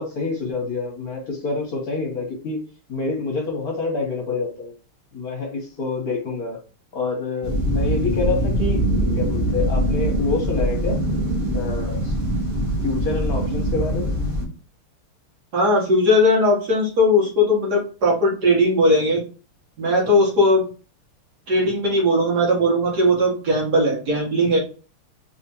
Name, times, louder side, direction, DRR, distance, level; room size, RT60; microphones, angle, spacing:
voice 1, 0.0-2.6 2.9-4.7 5.1-6.6 6.9-8.8 9.2-11.0 11.5-12.1 12.5-14.2, left 4 dB, 55° left, 0 dB, 1.2 m, -27 dB
sound 1, 7.4-14.4, right 1 dB, 35° right, 1.3 m, -23 dB
voice 2, 15.5-19.2 19.8-20.6 21.5-24.6, left 1 dB, 55° right, -3 dB, 1.6 m, -18 dB
3.5 x 3.4 x 2.9 m, 0.35 s
omnidirectional pair, 2.4 m